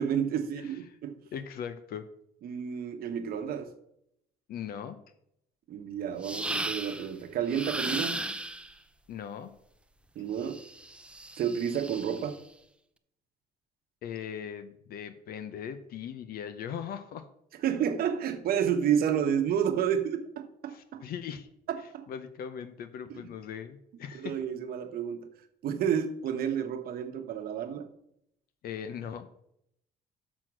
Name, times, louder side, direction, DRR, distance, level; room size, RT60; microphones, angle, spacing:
voice 1, 0.0-1.2 2.4-3.7 5.7-8.3 10.1-10.6 11.4-12.4 17.6-21.0 21.7-22.1 23.1-23.2 24.1-25.3 25.6-27.9, right 8 dB, 65° right, 7 dB, 1.0 m, -30 dB
voice 2, 0.6-1.0 1.3-2.1 4.5-5.0 9.1-9.5 14.0-17.3 20.7-21.5 22.1-24.4 28.6-29.3, left 8 dB, 65° left, 11 dB, 0.7 m, -39 dB
sound 1, 6.2-7.1 7.5-8.7 10.4-12.3, right 2 dB, 5° right, 0.5 m, -36 dB
6.3 x 6.1 x 6.2 m, 0.75 s
cardioid pair, 110°, 17 cm